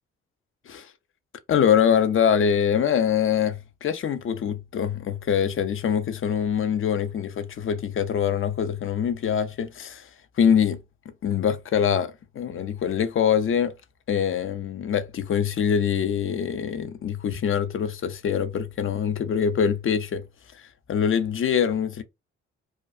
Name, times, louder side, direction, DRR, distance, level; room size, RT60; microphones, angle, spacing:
voice 1, 1.5-10.1 10.4-10.8 11.2-13.7 14.1-20.2 20.6-22.0, left 8 dB, 40° left, 0.5 m, -24 dB
2.4 x 2.3 x 2.3 m
hypercardioid pair, 45°, 34 cm